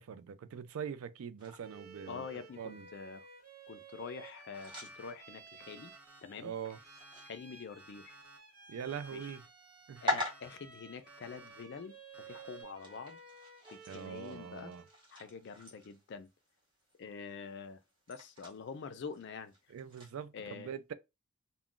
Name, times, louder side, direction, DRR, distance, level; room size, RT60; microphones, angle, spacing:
voice 1, 0.0-2.3 2.6-2.9 6.4-6.8 8.7-9.4 9.9-10.2 13.9-14.8 19.7-20.9, right 7 dB, 75° right, 0.3 m, -43 dB
sound 1, 1.4-20.2, left 1 dB, 25° right, 0.9 m, -46 dB
Bowed string instrument, 1.6-15.0, right 4 dB, 45° right, 1.0 m, -54 dB
voice 2, 2.1-3.3 3.7-5.9 6.2-6.5 7.2-8.2 9.1-9.2 10.0-13.2 13.7-14.7 15.1-16.3 17.0-17.8 18.1-19.5 20.3-20.7, left 5 dB, 55° left, 0.4 m, -46 dB
Alarm, 4.5-5.1 5.6-6.2 6.7-7.3 7.8-8.4 8.9-9.5 10.0-10.5 11.1-11.6 12.1-12.6, right 2 dB, 5° right, 0.5 m, -59 dB
2.3 x 2.2 x 3.7 m
head